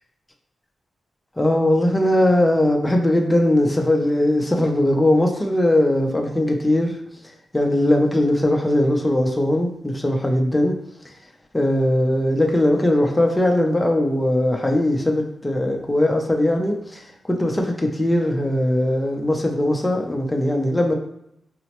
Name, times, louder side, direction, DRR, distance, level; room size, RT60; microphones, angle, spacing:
voice 1, 1.4-6.9 7.5-10.8 11.5-20.9, left 1 dB, 10° left, 1 dB, 0.4 m, -20 dB
3.9 x 2.0 x 2.8 m, 0.77 s
wide cardioid pair, 135°, 0 cm